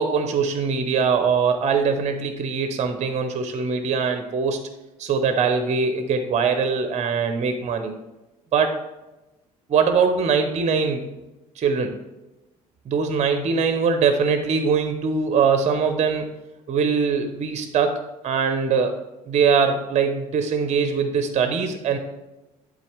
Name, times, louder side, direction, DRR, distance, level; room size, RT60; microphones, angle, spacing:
voice 1, 0.0-4.6 5.0-7.9 8.5-8.8 9.7-11.1 11.6-11.9 12.9-16.3 16.7-19.0 19.3-22.0, right 5 dB, 35° right, 8 dB, 0.8 m, -22 dB
11.5 x 3.8 x 3.2 m, 1.0 s
figure-of-eight pair, 50°, 19 cm